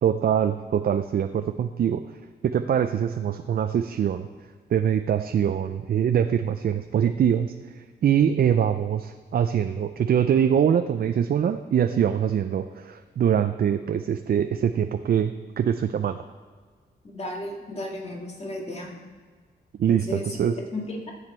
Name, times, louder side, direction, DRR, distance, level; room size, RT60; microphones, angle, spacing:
voice 1, 0.0-2.0 2.4-4.3 4.7-16.2 19.8-20.6, right 8 dB, 60° right, 8 dB, 0.5 m, -23 dB
voice 2, 17.1-19.0 19.9-20.2 20.7-21.1, left 1 dB, 35° left, 0 dB, 2.1 m, -34 dB
13.5 x 8.0 x 4.4 m, 1.5 s
cardioid pair, 90°, 18 cm